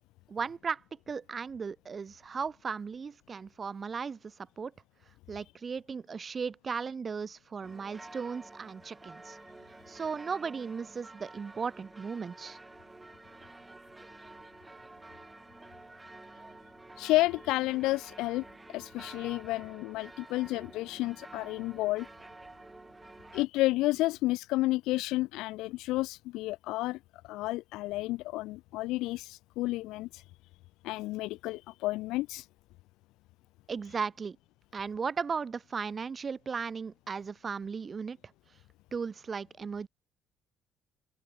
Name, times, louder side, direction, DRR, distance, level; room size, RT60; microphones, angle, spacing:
voice 1, 0.3-0.8 1.1-4.7 5.3-9.4 9.9-12.6 33.7-34.4 34.7-38.2 38.9-39.9, right 5 dB, 30° right, 0.5 m, -36 dB
sound 1, 7.6-23.5, right 2 dB, 10° right, 0.9 m, -50 dB
voice 2, 17.0-18.4 18.7-22.1 23.3-30.2 30.8-32.5, left 19 dB, 90° left, 0.4 m, -31 dB
open air
cardioid pair, 130°, 0 cm